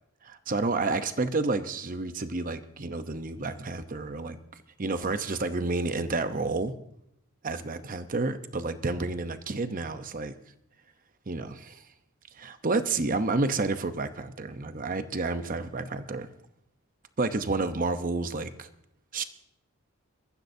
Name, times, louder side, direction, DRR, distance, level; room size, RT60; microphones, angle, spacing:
voice 1, 0.2-4.4 4.8-6.7 7.4-10.3 11.3-11.8 12.4-16.3 17.2-18.7 19.1-19.2, right 3 dB, 40° right, 10 dB, 0.8 m, -30 dB
22.0 x 14.5 x 2.7 m, 0.76 s
head